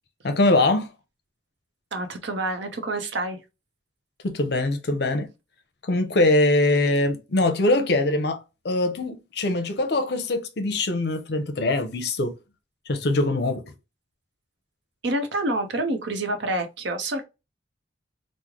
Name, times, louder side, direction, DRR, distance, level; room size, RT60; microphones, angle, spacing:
voice 1, 0.2-0.9 4.2-5.3 5.8-12.3 12.9-13.7, left 2 dB, 60° left, 0.6 m, -23 dB
voice 2, 1.9-3.4 15.0-17.2, right 2 dB, 70° right, 0.7 m, -27 dB
3.1 x 2.1 x 3.6 m
head